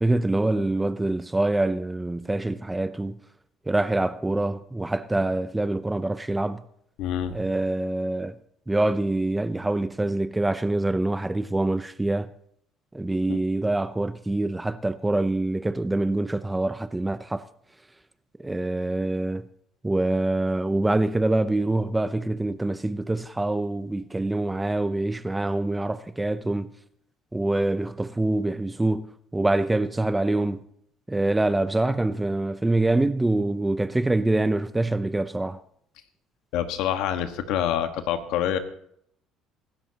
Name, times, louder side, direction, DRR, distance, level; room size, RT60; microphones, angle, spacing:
voice 1, 0.0-3.2 3.7-6.6 7.3-8.4 8.7-12.3 12.9-17.4 18.4-19.5 19.8-26.7 27.3-30.6 31.1-35.6, right 2 dB, 10° right, 0.6 m, -25 dB
voice 2, 7.0-7.3 13.3-13.4 36.5-38.6, left 10 dB, 80° left, 1.5 m, -26 dB
25.0 x 13.0 x 2.9 m
cardioid pair, 105°, 0 cm